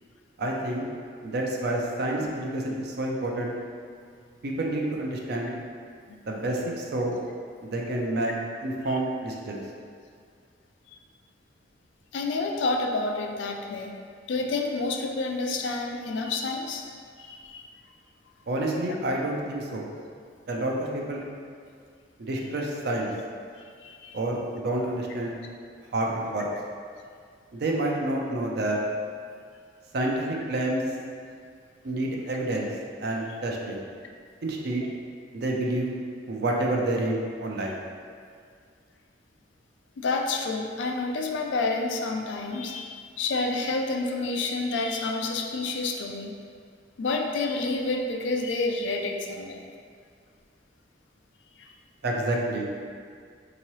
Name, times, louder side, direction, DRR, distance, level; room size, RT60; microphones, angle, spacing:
voice 1, 0.4-0.9 1.2-3.5 4.4-5.6 6.3-7.1 7.7-8.3 8.6-9.6 18.5-19.9 20.5-21.2 22.2-23.1 24.1-25.3 25.9-26.5 27.5-28.8 29.9-30.8 31.8-32.7 33.0-33.8 34.4-34.8 35.3-35.9 36.3-37.8 52.0-52.7, right 1 dB, 60° right, -1 dB, 0.5 m, -28 dB
voice 2, 12.1-14.0 14.3-16.9 17.2-17.7 23.8-24.2 40.0-46.3 47.0-49.6 51.6-51.7, left 3 dB, 80° left, 3 dB, 0.4 m, -29 dB
3.7 x 2.9 x 3.0 m, 2.1 s
head